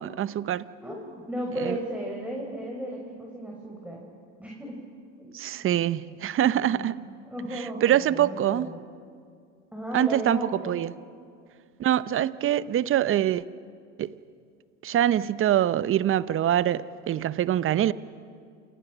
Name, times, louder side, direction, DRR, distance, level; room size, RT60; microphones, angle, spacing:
voice 1, 0.0-0.6 1.6-1.8 5.3-6.9 7.8-8.7 9.9-10.4 10.6-10.9 11.8-13.4 14.0-14.2 14.8-17.9, right 11 dB, 35° right, 0.9 m, -24 dB
voice 2, 0.8-4.1 4.4-4.8 5.2-5.3 6.7-6.9 7.3-8.8 9.7-10.8, equal, 5° right, 5.6 m, -35 dB
29.0 x 28.0 x 6.3 m
hypercardioid pair, 95°, 37 cm